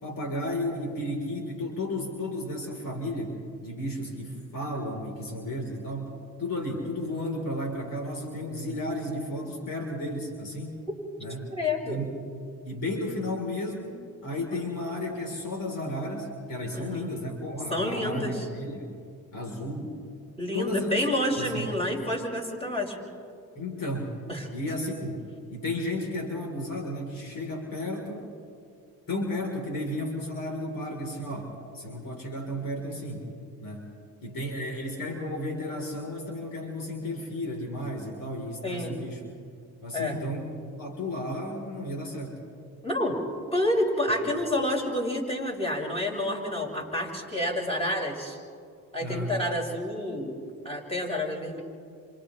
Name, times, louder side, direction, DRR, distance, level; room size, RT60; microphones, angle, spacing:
voice 1, 0.0-10.9 11.2-11.5 11.9-12.2 12.6-18.9 19.3-20.0 20.5-21.0 21.4-21.7 23.6-24.2 24.5-28.2 29.1-33.3 33.6-33.9 34.2-39.2 39.8-42.4 49.0-49.4, left 1 dB, 60° left, 1 dB, 4.0 m, -33 dB
voice 2, 11.5-12.0 16.7-17.1 17.7-18.4 20.4-23.0 24.3-24.5 38.6-39.0 39.9-40.2 42.8-43.2 43.5-48.4 48.9-51.6, left 1 dB, 15° left, -2 dB, 6.3 m, -29 dB
30.0 x 27.5 x 3.3 m, 2.3 s
supercardioid pair, 60°, 37 cm